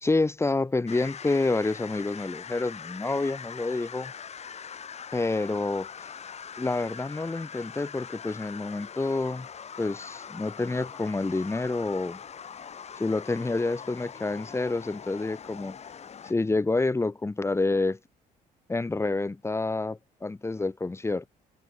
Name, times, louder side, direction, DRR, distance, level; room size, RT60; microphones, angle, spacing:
voice 1, 0.0-4.1 5.1-5.9 6.6-9.5 9.8-12.2 13.0-15.8 16.2-18.0 18.7-21.3, left 3 dB, 15° left, 3.1 m, -28 dB
sound 1, 0.9-16.3, left 7 dB, 40° left, 4.5 m, -42 dB
cardioid pair, 110°, 17 cm